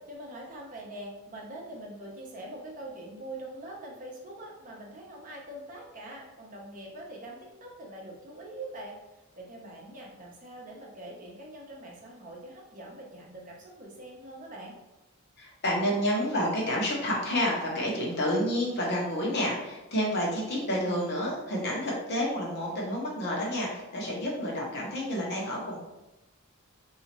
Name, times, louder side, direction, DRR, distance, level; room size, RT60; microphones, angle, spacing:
voice 1, 0.0-9.0 9.4-14.8, right 1 dB, 35° right, -2 dB, 0.7 m, -43 dB
voice 2, 15.4-25.8, equal, 50° left, -4 dB, 1.0 m, -29 dB
4.0 x 2.8 x 2.9 m, 0.99 s
head